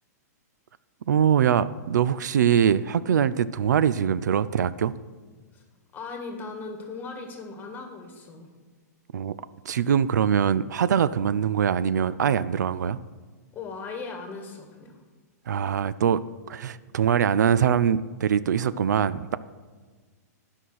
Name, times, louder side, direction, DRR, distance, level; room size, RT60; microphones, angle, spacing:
voice 1, 1.1-4.9 9.1-9.3 9.7-13.0 15.5-16.2 16.5-19.4, right 8 dB, 85° right, 16 dB, 0.4 m, -23 dB
voice 2, 5.9-8.5 13.5-15.0, left 4 dB, 20° left, 3 dB, 1.6 m, -38 dB
9.2 x 5.7 x 6.3 m, 1.4 s
hypercardioid pair, 135°, 9 cm